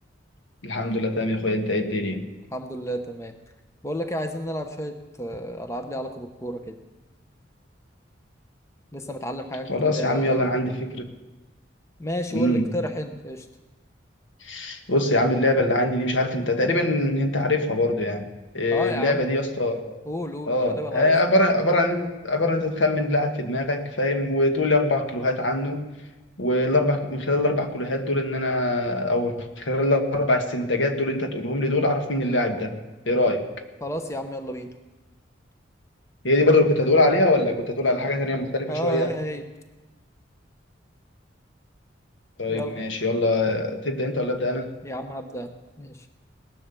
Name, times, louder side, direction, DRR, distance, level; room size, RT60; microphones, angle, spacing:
voice 1, 0.6-2.3 9.7-11.1 12.3-12.6 14.4-18.3 18.5-20.0 20.5-25.8 26.4-32.7 33.0-33.5 36.2-39.1 42.4-44.7, left 1 dB, 75° left, 5 dB, 1.6 m, -23 dB
voice 2, 2.5-3.4 3.8-6.8 8.9-10.5 12.0-13.5 18.7-19.3 20.1-21.4 33.8-34.7 38.7-39.5 42.5-42.8 44.8-46.1, equal, 15° left, 7 dB, 0.8 m, -32 dB
18.0 x 11.0 x 6.9 m, 1.1 s
head